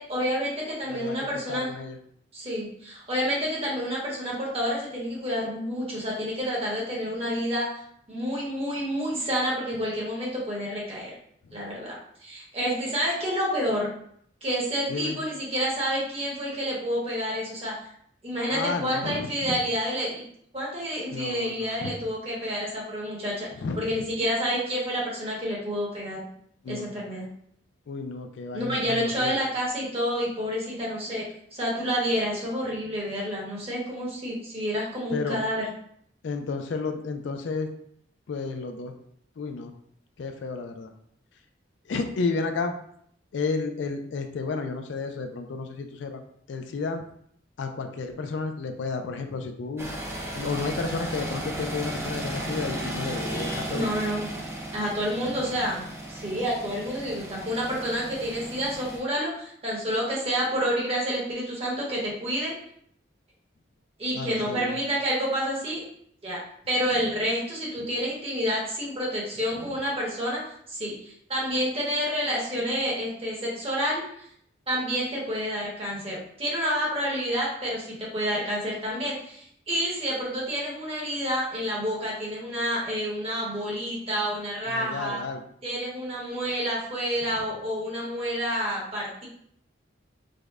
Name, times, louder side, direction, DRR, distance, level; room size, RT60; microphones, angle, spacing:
voice 1, 0.0-1.7 2.3-7.7 8.1-11.1 11.5-13.9 14.4-17.7 18.2-20.2 20.5-23.5 23.8-26.3 26.7-27.3 28.5-35.6 53.7-54.4 54.7-55.8 56.1-62.5 64.0-65.8 66.2-66.4 66.7-74.2 74.7-85.2 85.6-89.3, equal, 30° right, -4 dB, 1.0 m, -29 dB
voice 2, 0.9-2.0 11.4-11.7 14.9-15.2 18.5-19.6 21.1-22.0 23.6-24.1 26.6-26.9 27.9-29.4 35.1-35.4 36.2-37.7 38.3-38.9 39.4-39.7 40.2-40.9 41.8-42.7 43.3-46.2 46.5-47.0 47.6-49.9 50.3-54.0 55.2-55.6 64.1-64.8 69.5-69.7 84.7-85.4 87.3-87.4, left 4 dB, 70° left, 6 dB, 0.3 m, -32 dB
sound 1, 49.8-59.0, right 1 dB, 15° right, 0.4 m, -35 dB
5.0 x 2.1 x 2.4 m, 0.67 s
head